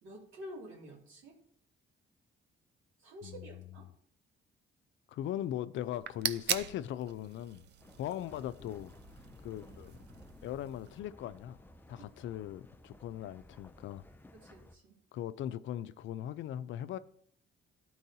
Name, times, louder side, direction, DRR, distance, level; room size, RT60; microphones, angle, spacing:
voice 1, 0.0-1.3 3.0-3.9 12.0-12.1 14.3-15.0, equal, 85° right, 2.4 m, -49 dB
voice 2, 3.2-3.8 5.1-7.7 8.0-8.9 9.4-10.0 10.4-11.6 11.9-14.1 15.1-17.0, left 11 dB, 75° left, 0.4 m, -39 dB
sound 1, 5.8-11.0, right 10 dB, 60° right, 0.5 m, -41 dB
sound 2, 7.8-14.8, left 1 dB, 10° left, 0.4 m, -56 dB
12.5 x 4.6 x 2.7 m
cardioid pair, 90°, 20 cm